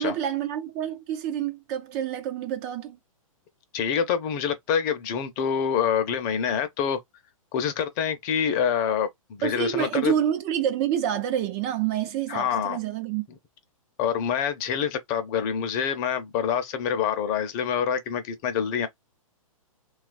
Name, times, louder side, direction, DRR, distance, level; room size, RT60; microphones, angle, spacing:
voice 1, 0.0-3.0 9.4-13.3, right 10 dB, 30° right, 0.4 m, -27 dB
voice 2, 3.7-7.0 7.5-10.1 12.3-12.8 14.0-18.9, left 7 dB, 35° left, 0.6 m, -26 dB
3.0 x 2.4 x 2.4 m
figure-of-eight pair, 120°, 18 cm